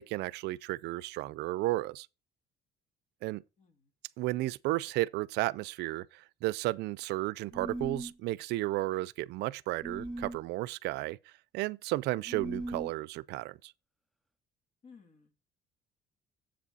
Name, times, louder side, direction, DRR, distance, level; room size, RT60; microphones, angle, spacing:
voice 1, 0.0-2.1 3.2-3.4 4.2-13.7, right 18 dB, 80° right, 0.4 m, -33 dB
voice 2, 3.6-3.9 14.8-15.4, left 5 dB, 45° left, 1.9 m, -57 dB
sound 1, 7.5-8.2 9.8-10.4 12.3-13.0, right 1 dB, ahead, 0.4 m, -38 dB
7.4 x 7.3 x 4.0 m
cardioid pair, 110°, 17 cm